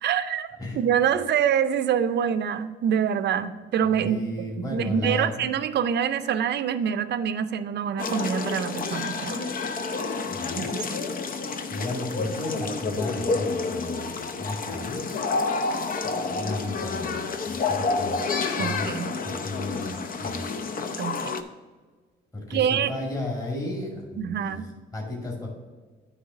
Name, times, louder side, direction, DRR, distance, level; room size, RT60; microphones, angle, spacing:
voice 1, 0.0-4.2 4.6-9.5 10.6-11.0 18.6-19.1 21.0-21.4 22.5-22.9 24.2-24.6, right 8 dB, 60° right, 11 dB, 0.5 m, -26 dB
voice 2, 3.9-5.5 10.3-10.7 11.7-15.0 16.0-17.2 17.5-18.3 18.6-20.5 22.3-25.5, left 1 dB, 20° left, -3 dB, 2.2 m, -34 dB
sound 1, 8.0-21.4, left 4 dB, 45° left, 0.7 m, -29 dB
9.7 x 3.3 x 6.2 m, 1.4 s
cardioid pair, 90°, 20 cm